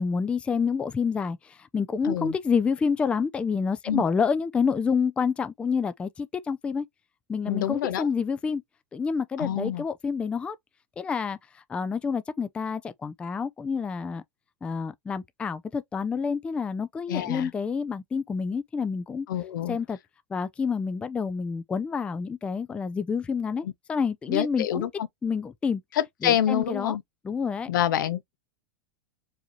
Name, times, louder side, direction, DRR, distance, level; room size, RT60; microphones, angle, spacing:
voice 1, 0.0-1.4 1.7-6.9 7.3-8.6 8.9-10.6 11.0-11.4 11.7-14.2 14.6-19.3 19.7-20.0 20.3-24.9 25.2-25.8 26.2-27.0 27.2-27.7, left 5 dB, 10° left, 0.3 m, -28 dB
voice 2, 2.0-2.4 3.9-4.0 7.5-8.1 9.4-9.8 17.1-17.5 19.3-19.8 23.6-23.7 24.3-24.9 25.9-27.0 27.7-28.4, left 10 dB, 80° left, 0.7 m, -27 dB
4.8 x 2.7 x 2.9 m
supercardioid pair, 145°, 11 cm